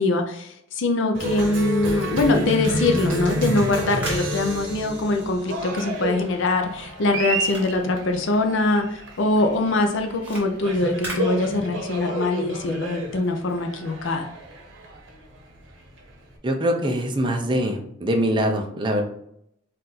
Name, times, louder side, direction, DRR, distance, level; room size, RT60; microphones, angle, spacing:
voice 1, 0.0-14.3, left 2 dB, 65° left, 5 dB, 0.5 m, -23 dB
Cheering, 1.1-16.3, right 1 dB, 70° right, 1.0 m, -30 dB
sound 1, 3.4-8.8 9.1-12.0, right 1 dB, 10° right, 1.4 m, -40 dB
voice 2, 16.4-19.0, equal, 25° right, 2 dB, 0.6 m, -23 dB
4.3 x 2.5 x 4.0 m, 0.71 s
head